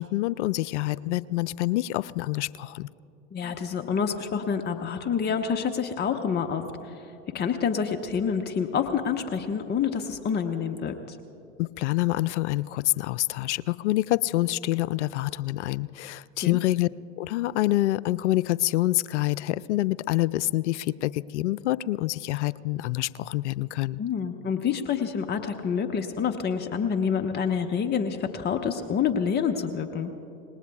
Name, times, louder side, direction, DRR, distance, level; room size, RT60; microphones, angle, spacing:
voice 1, 0.0-2.9 11.6-16.9 17.2-24.0, left 17 dB, 75° left, 19 dB, 0.5 m, -26 dB
voice 2, 3.3-11.2 16.4-16.6 24.0-30.1, left 7 dB, 30° left, 5 dB, 1.0 m, -28 dB
26.5 x 20.0 x 2.4 m, 2.9 s
hypercardioid pair, 80°, 35 cm